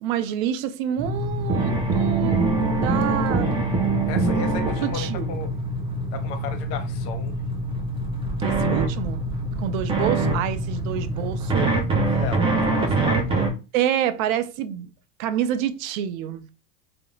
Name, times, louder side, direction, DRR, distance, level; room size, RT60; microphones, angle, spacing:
voice 1, 0.0-3.5 4.8-5.3 8.4-9.2 9.6-11.7 12.1-12.2 13.7-14.9 15.2-16.5, right 10 dB, 65° right, 0.5 m, -27 dB
sound 1, 1.0-13.5, right 2 dB, 15° right, 0.3 m, -24 dB
voice 2, 4.1-5.5 6.1-7.3 12.2-13.5, left 5 dB, 60° left, 0.8 m, -34 dB
2.4 x 2.1 x 3.0 m
hypercardioid pair, 100°, 44 cm